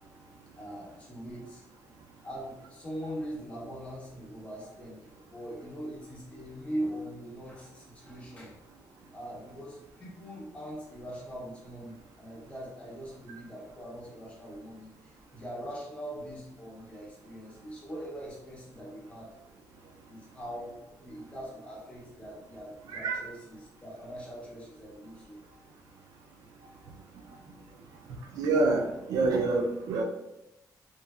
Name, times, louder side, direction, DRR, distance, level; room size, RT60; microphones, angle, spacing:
voice 1, 0.6-1.6 2.2-8.5 9.1-19.3 20.1-25.4, equal, 20° left, -5 dB, 0.7 m, -41 dB
voice 2, 22.9-23.2 28.3-30.0, right 3 dB, 75° right, 3 dB, 0.4 m, -27 dB
3.0 x 2.5 x 2.3 m, 0.89 s
wide cardioid pair, 175°, 7 cm